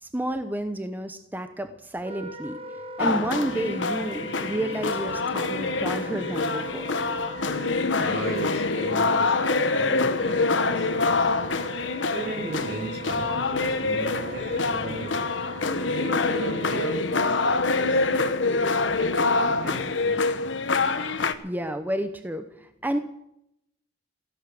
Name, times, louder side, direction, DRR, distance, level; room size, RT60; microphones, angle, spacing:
voice 1, 0.0-2.6 3.0-6.9 21.4-23.0, right 1 dB, 10° right, 8 dB, 0.9 m, -30 dB
Wind instrument woodwind instrument, 2.0-17.0, right 2 dB, 30° right, 1.6 m, -39 dB
sound 1, 3.0-21.3, left 3 dB, 85° left, 1.2 m, -25 dB
voice 2, 8.0-11.0 11.3-11.4 11.8-15.2 15.9-20.5, right 2 dB, 65° right, 1 dB, 6.2 m, -36 dB
15.5 x 11.0 x 7.6 m, 0.76 s
head